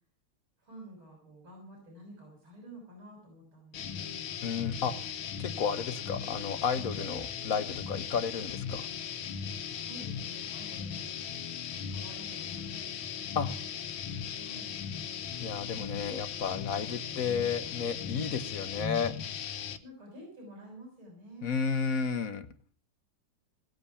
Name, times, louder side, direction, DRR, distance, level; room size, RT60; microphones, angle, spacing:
voice 1, 0.6-4.2 9.8-11.1 11.8-13.1 14.3-14.7 18.1-18.4 19.8-21.8, equal, 85° right, 0 dB, 6.8 m, -50 dB
sound 1, 3.7-19.8, left 7 dB, 75° left, 1.8 m, -38 dB
voice 2, 4.4-4.9 5.4-8.9 13.3-13.5 15.4-19.1 21.4-22.5, left 6 dB, 50° left, 11 dB, 1.3 m, -32 dB
19.0 x 8.6 x 7.0 m, 0.43 s
omnidirectional pair, 2.2 m